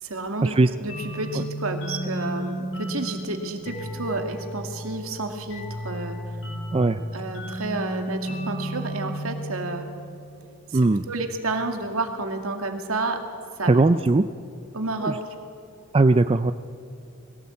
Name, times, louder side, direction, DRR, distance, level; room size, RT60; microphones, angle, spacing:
voice 1, 0.0-0.5 0.8-6.2 7.1-9.9 10.7-10.8 11.1-13.2 13.6-13.7 14.7-15.2, right 2 dB, 70° right, 5 dB, 2.3 m, -30 dB
sound 1, 0.9-10.2, right 1 dB, 65° left, 7.8 m, -33 dB
voice 2, 6.7-7.0 10.7-11.0 13.7-14.3 15.0-15.2 15.9-16.5, right 2 dB, 25° right, 11 dB, 0.4 m, -19 dB
21.0 x 17.0 x 8.4 m, 2.5 s
head